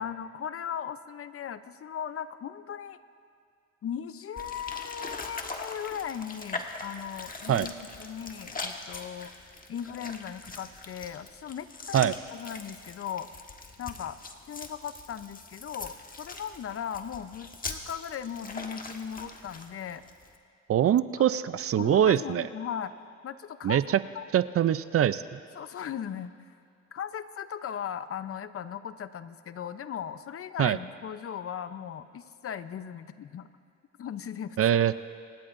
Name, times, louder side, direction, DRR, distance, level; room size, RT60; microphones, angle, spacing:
voice 1, 0.0-3.0 3.8-9.3 9.7-13.3 13.8-14.2 14.5-20.0 21.2-21.3 21.8-22.9 23.2-23.8 24.1-24.3 25.5-26.5 26.9-33.5 34.0-34.6, left 8 dB, 50° left, 12 dB, 0.7 m, -38 dB
sound 1, 4.4-20.4, left 3 dB, 30° left, 1.4 m, -42 dB
voice 2, 20.7-22.5 23.6-23.8 24.3-25.4 30.6-30.8 34.6-34.9, right 10 dB, 50° right, 14 dB, 0.5 m, -23 dB
26.0 x 18.5 x 2.6 m, 2.4 s
cardioid pair, 90°, 30 cm